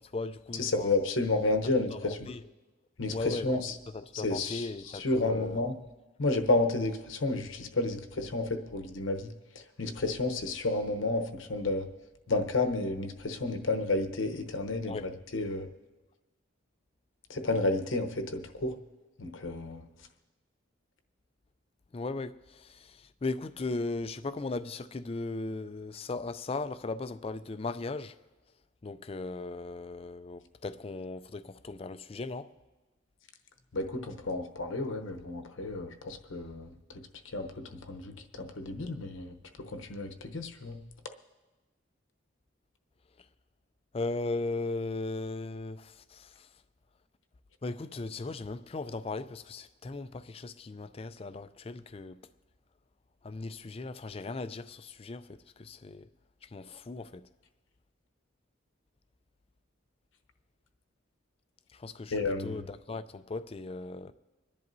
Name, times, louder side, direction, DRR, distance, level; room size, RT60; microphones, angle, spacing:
voice 1, 0.0-1.1 1.9-2.4 3.1-3.6 3.9-5.7 14.8-15.1 21.9-28.2 28.8-32.5 43.9-46.5 47.6-52.2 53.2-56.1 56.4-57.3 61.7-64.1, left 3 dB, 30° left, 0.4 m, -37 dB
voice 2, 0.6-2.2 3.0-3.7 4.2-4.7 4.9-5.7 6.2-11.9 12.3-15.7 17.3-18.8 19.2-19.8 33.7-36.7 37.2-40.8 62.1-62.6, left 2 dB, 75° left, 0.9 m, -31 dB
26.0 x 10.5 x 2.7 m
head